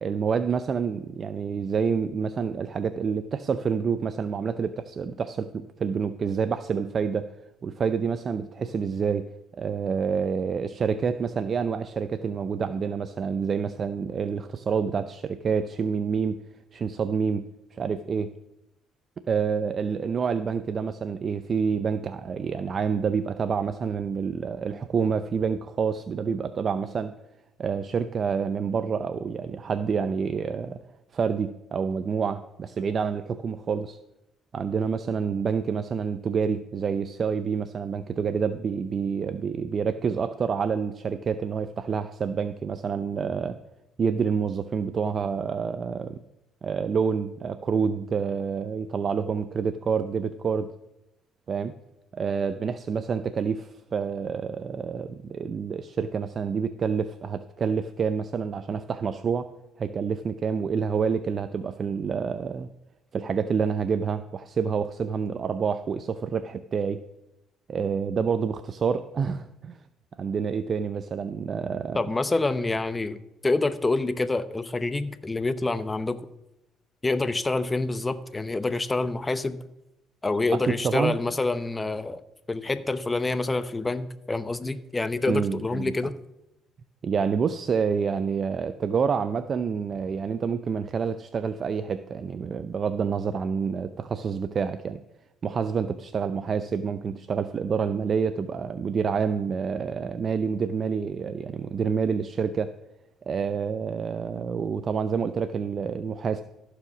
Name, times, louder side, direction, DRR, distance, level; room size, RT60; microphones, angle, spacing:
voice 1, 0.0-7.3 7.6-9.3 9.6-16.4 16.7-18.3 19.3-27.1 27.6-30.8 31.1-34.0 34.5-43.6 44.0-46.2 46.6-50.7 51.5-51.7 52.1-59.5 59.8-62.7 63.1-67.0 67.7-69.8 70.2-72.0 80.7-81.2 85.3-86.0 87.0-95.0 95.4-102.7 103.3-106.4, right 6 dB, 45° right, 11 dB, 0.5 m, -28 dB
voice 2, 71.9-73.2 73.4-76.2 77.0-79.6 80.2-82.2 82.5-86.2, left 3 dB, 20° left, 13 dB, 0.7 m, -27 dB
14.5 x 4.9 x 6.1 m, 0.89 s
supercardioid pair, 80°, 0 cm